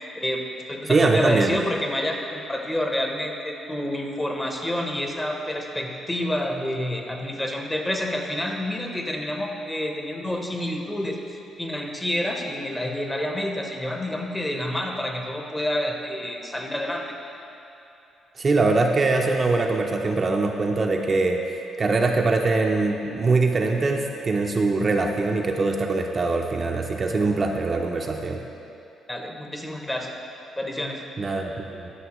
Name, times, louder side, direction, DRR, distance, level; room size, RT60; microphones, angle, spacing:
voice 1, 0.2-17.1 29.1-30.1 30.6-31.0, left 1 dB, 15° left, 2 dB, 0.8 m, -28 dB
voice 2, 0.9-1.6 18.4-28.4 31.2-31.9, right 3 dB, 35° right, 2 dB, 0.5 m, -23 dB
11.0 x 5.4 x 3.0 m, 2.7 s
cardioid pair, 90°, 0 cm